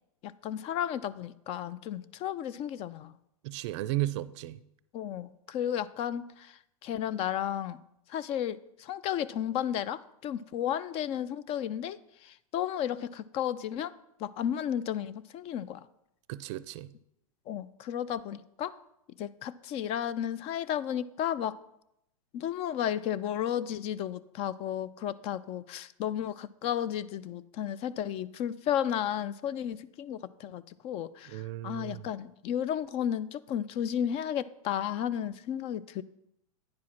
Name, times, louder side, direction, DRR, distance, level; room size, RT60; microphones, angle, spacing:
voice 1, 0.2-3.1 4.9-7.8 8.1-13.9 14.2-15.9 17.5-18.7 19.2-21.6 22.3-36.0, left 10 dB, 35° left, 0.4 m, -33 dB
voice 2, 3.4-4.6 16.3-16.9 31.3-32.0, right 15 dB, 50° right, 0.4 m, -34 dB
9.4 x 4.8 x 5.8 m
hypercardioid pair, 120°, 18 cm